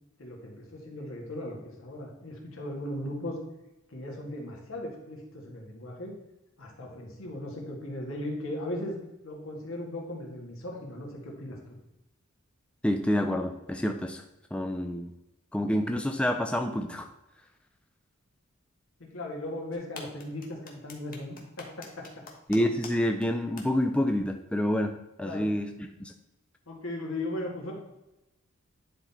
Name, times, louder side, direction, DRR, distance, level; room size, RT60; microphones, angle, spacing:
voice 1, 0.2-3.4 3.9-6.1 6.6-9.0 9.2-11.8 19.0-22.1 25.2-25.5 26.7-27.7, left 1 dB, 75° left, 0 dB, 1.9 m, -37 dB
voice 2, 12.8-14.2 14.5-15.1 15.5-17.1 22.5-25.7 26.0-26.1, left 1 dB, 5° left, 5 dB, 0.4 m, -28 dB
sound 1, 19.7-22.9 23.2-23.3 23.6-23.7, left 4 dB, 45° left, 1.2 m, -44 dB
10.0 x 3.9 x 4.2 m, 0.95 s
head